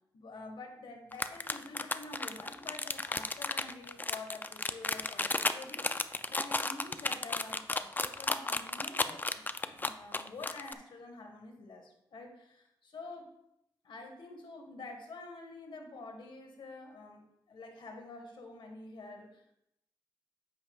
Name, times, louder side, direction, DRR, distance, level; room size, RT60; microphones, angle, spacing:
voice 1, 0.1-13.3 13.8-19.6, left 3 dB, 80° left, 3 dB, 1.5 m, -48 dB
sound 1, 1.1-10.7, left 2 dB, 20° left, 0.4 m, -33 dB
8.7 x 8.1 x 2.4 m, 0.81 s
cardioid pair, 75°, 8 cm